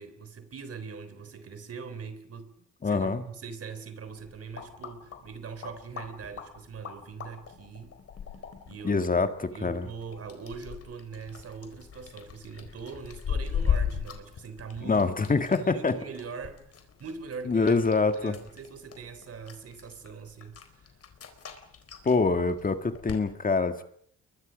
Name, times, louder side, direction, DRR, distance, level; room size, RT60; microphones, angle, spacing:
voice 1, 0.0-8.0 8.7-9.0 9.5-16.6 17.0-17.7 18.1-20.9, right 5 dB, 50° right, 3.6 m, -42 dB
voice 2, 2.8-3.2 8.8-9.9 14.8-16.0 17.5-18.4 22.0-23.8, left 4 dB, 30° left, 1.9 m, -25 dB
sound 1, 4.1-23.2, left 7 dB, 50° left, 4.3 m, -38 dB
29.0 x 23.0 x 5.2 m
cardioid pair, 90°, 30 cm